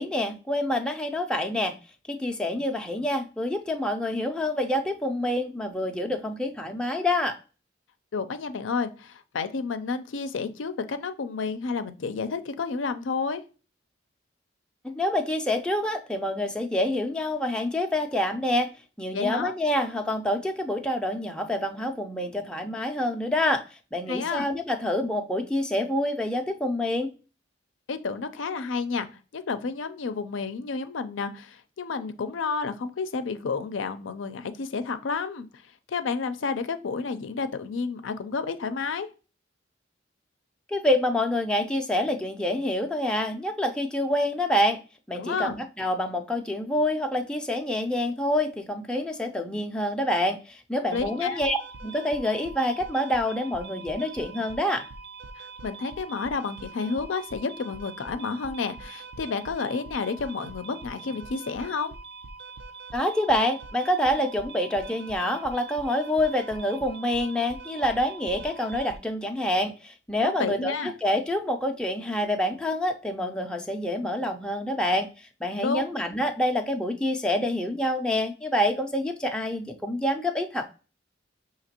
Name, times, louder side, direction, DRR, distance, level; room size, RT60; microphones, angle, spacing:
voice 1, 0.0-1.7 2.1-7.4 14.8-18.7 19.0-23.6 23.9-27.1 40.7-44.8 45.1-54.9 62.9-75.1 75.4-80.7, left 1 dB, 5° left, 3 dB, 0.4 m, -27 dB
voice 2, 8.1-13.4 19.1-19.6 24.1-24.5 27.9-29.1 29.3-35.6 35.9-39.1 45.2-45.6 50.9-51.4 55.4-61.9 70.2-70.9 75.5-75.9, left 4 dB, 80° left, 10 dB, 0.5 m, -31 dB
sound 1, 50.9-69.0, right 3 dB, 60° right, 0.4 m, -43 dB
5.9 x 2.9 x 2.8 m, 0.34 s
head